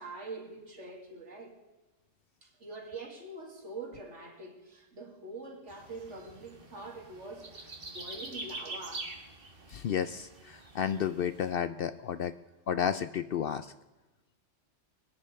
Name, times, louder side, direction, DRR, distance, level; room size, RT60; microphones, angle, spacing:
voice 1, 0.0-1.6 2.4-9.1, right 3 dB, 70° right, 1 dB, 2.6 m, -44 dB
sound 1, 5.7-11.5, right 2 dB, 45° right, 1.8 m, -45 dB
voice 2, 9.7-12.3 12.7-13.7, left 8 dB, 60° left, 12 dB, 0.6 m, -32 dB
22.0 x 10.5 x 3.3 m, 1.1 s
omnidirectional pair, 1.3 m